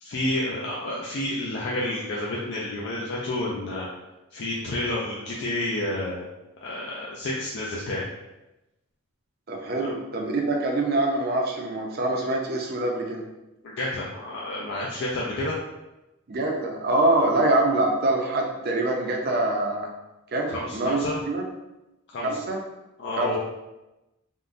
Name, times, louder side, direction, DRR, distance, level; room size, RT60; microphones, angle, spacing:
voice 1, 0.0-3.9 4.3-6.3 6.6-8.1 13.6-15.6 20.5-21.2 22.1-22.4 23.0-23.4, left 1 dB, 55° left, -5 dB, 0.4 m, -30 dB
voice 2, 9.5-13.2 16.3-19.9 20.3-21.4 22.2-22.6 23.2-23.4, right 2 dB, 45° right, 0 dB, 0.5 m, -25 dB
3.6 x 2.1 x 2.5 m, 0.99 s
head